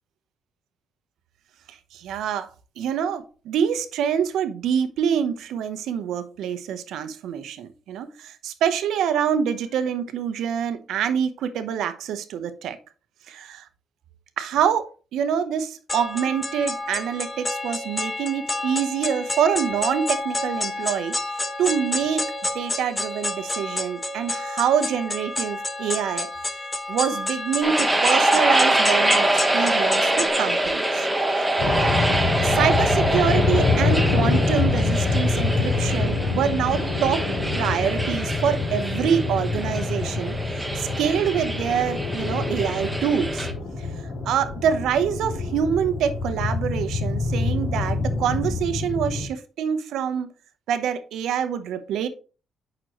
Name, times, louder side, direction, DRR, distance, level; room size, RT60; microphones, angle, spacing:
voice 1, 1.9-2.5 2.8-12.8 13.3-13.6 14.4-21.2 21.6-22.3 22.5-26.3 26.9-31.0 31.4-31.5 32.4-37.3 37.6-40.3 40.8-43.5 44.3-50.3 50.7-52.1, right 8 dB, 80° right, 0.9 m, -26 dB
sound 1, 15.9-30.3, left 2 dB, 20° left, 1.1 m, -29 dB
sound 2, 27.6-43.5, right 1 dB, 10° right, 1.4 m, -25 dB
sound 3, 31.6-49.3, left 3 dB, 75° left, 3.3 m, -25 dB
8.8 x 6.2 x 3.1 m
cardioid pair, 90°, 0 cm